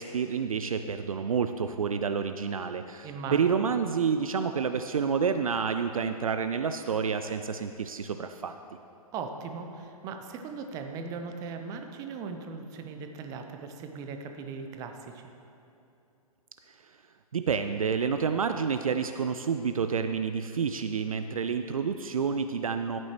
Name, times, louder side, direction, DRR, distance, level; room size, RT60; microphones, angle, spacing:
voice 1, 0.0-8.5 17.3-23.0, right 6 dB, 65° right, 8 dB, 0.4 m, -29 dB
voice 2, 3.0-3.4 9.1-15.2, right 5 dB, 20° right, 6 dB, 0.6 m, -38 dB
12.0 x 8.9 x 3.1 m, 2.8 s
figure-of-eight pair, 120°, 19 cm